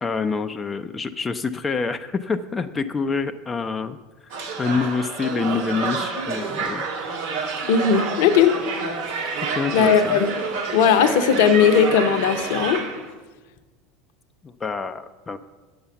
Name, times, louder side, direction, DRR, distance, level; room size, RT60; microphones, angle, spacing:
voice 1, 0.0-4.0 4.3-6.8 9.5-10.2 14.4-15.4, left 4 dB, 20° left, 8 dB, 0.5 m, -27 dB
sound 1, 4.3-13.1, right 4 dB, 65° right, 1.7 m, -28 dB
voice 2, 7.7-8.5 9.7-10.3 10.7-12.8, left 7 dB, 65° left, 10 dB, 0.7 m, -17 dB
8.6 x 6.9 x 6.9 m, 1.3 s
hypercardioid pair, 75°, 0 cm